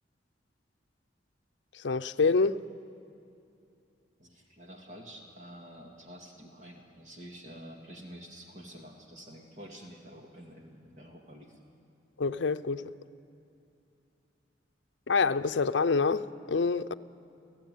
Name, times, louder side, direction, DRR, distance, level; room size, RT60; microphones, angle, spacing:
voice 1, 1.8-2.6 12.2-12.9 15.1-16.9, left 4 dB, 75° left, 0.6 m, -26 dB
voice 2, 4.2-11.6, equal, 40° right, 2.2 m, -48 dB
28.5 x 15.5 x 9.1 m
head